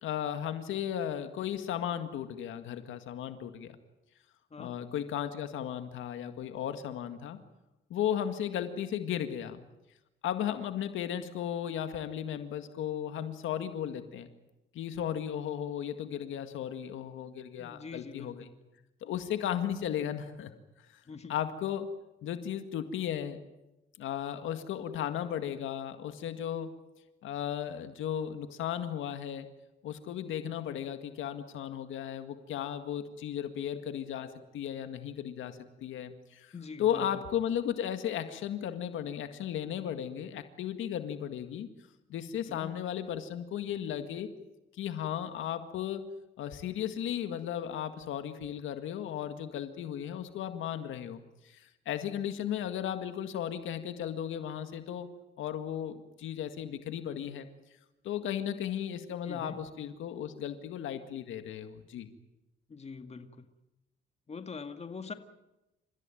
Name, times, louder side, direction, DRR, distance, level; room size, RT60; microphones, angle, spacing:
voice 1, 0.0-3.8 4.6-7.4 7.9-9.6 10.2-14.3 14.7-18.5 19.0-20.5 21.3-21.9 22.2-23.4 24.0-26.7 27.2-29.5 29.8-36.5 36.8-41.7 42.1-44.3 44.8-46.0 46.4-51.2 51.4-55.1 55.4-57.5 58.0-62.1, left 10 dB, 80° left, 8 dB, 2.0 m, -35 dB
voice 2, 17.6-18.5 21.1-21.4 36.5-37.1 42.5-42.8 59.3-59.6 62.7-63.5 64.3-65.1, left 5 dB, 35° left, 8 dB, 2.0 m, -44 dB
29.5 x 15.5 x 9.2 m, 0.97 s
cardioid pair, 90°, 20 cm